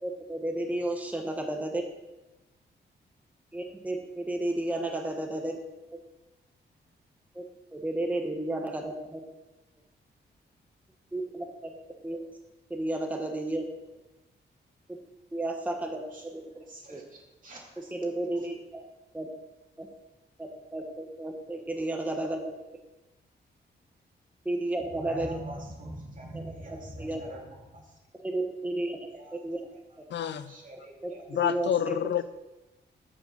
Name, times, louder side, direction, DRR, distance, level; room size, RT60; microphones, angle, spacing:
voice 1, 0.0-1.8 3.5-5.6 7.3-7.4 7.7-9.2 11.1-11.7 12.0-12.2 12.7-13.6 14.9-15.0 15.3-16.6 16.9-17.0 17.9-18.8 19.1-19.3 19.8-19.9 20.4-22.4 24.4-25.3 26.3-26.5 27.0-27.2 28.2-29.0 29.3-29.7 31.0-31.1 31.4-32.0, right 1 dB, 10° right, 3 dB, 1.2 m, -32 dB
voice 2, 16.7-17.9 18.3-18.5 24.9-28.0 29.1-29.4 29.7-29.8 30.5-31.2, right 1 dB, 45° right, -2 dB, 3.0 m, -43 dB
voice 3, 30.1-30.5 31.3-32.2, left 9 dB, 75° left, 13 dB, 0.6 m, -28 dB
8.2 x 7.6 x 6.6 m, 1.0 s
cardioid pair, 110°, 18 cm